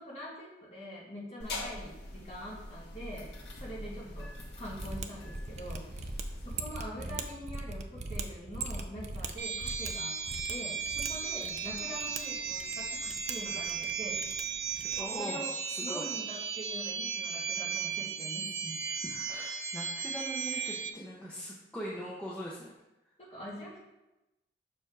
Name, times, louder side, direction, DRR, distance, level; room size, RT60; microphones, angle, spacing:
voice 1, 0.0-3.3 3.6-4.3 4.6-6.1 6.4-10.1 10.5-14.2 15.2-15.5 15.8-19.0 23.2-23.8, equal, 35° left, -6 dB, 2.3 m, -44 dB
sound 1, 1.4-6.6, left 2 dB, 80° left, 1.2 m, -43 dB
voice 2, 3.9-4.3 7.0-7.3 11.4-11.7 14.8-16.1 19.0-22.7, equal, 5° left, -6 dB, 0.7 m, -42 dB
Mechanisms, 4.7-15.2, right 3 dB, 40° right, 0.5 m, -41 dB
sound 2, 9.4-20.9, right 6 dB, 75° right, 0.7 m, -36 dB
6.1 x 4.5 x 4.8 m, 0.96 s
head